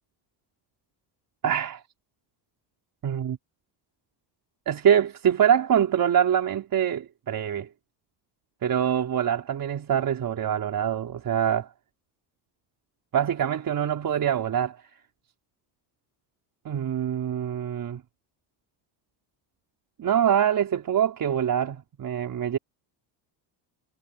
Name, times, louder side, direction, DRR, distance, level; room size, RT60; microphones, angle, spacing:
voice 1, 1.4-1.8 3.0-3.4 4.7-7.7 8.6-11.7 13.1-14.8 16.7-18.0 20.0-22.6, right 9 dB, 45° right, 3.8 m, -24 dB
cardioid pair, 110°, 47 cm